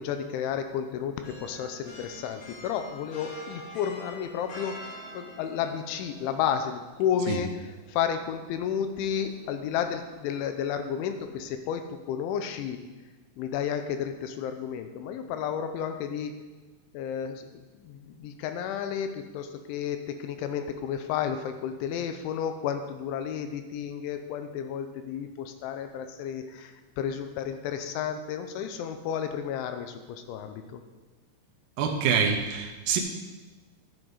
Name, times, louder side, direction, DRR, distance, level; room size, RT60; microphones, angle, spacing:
voice 1, 0.0-4.9 5.1-12.8 13.4-16.4 16.9-30.8, left 8 dB, 80° left, 8 dB, 3.0 m, -32 dB
sound 1, 1.2-11.5, equal, 55° left, 3.1 m, -48 dB
voice 2, 31.8-33.0, right 6 dB, 75° right, 1 dB, 2.1 m, -25 dB
11.5 x 9.8 x 4.1 m, 1.3 s
omnidirectional pair, 5.5 m